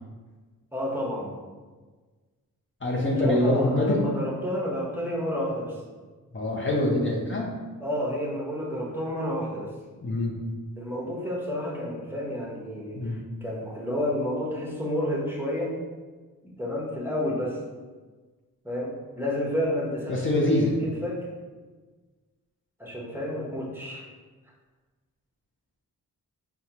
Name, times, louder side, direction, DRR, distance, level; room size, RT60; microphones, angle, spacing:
voice 1, 0.7-1.3 2.9-5.8 7.8-9.7 10.8-15.7 16.4-17.6 18.6-20.2 20.8-21.3 22.8-24.0, left 1 dB, 5° right, -4 dB, 1.0 m, -30 dB
voice 2, 2.8-4.1 6.3-7.5 10.0-10.3 12.9-13.2 20.1-20.7, left 1 dB, 35° left, -4 dB, 0.8 m, -24 dB
4.6 x 2.3 x 2.8 m, 1.3 s
cardioid pair, 60°, 36 cm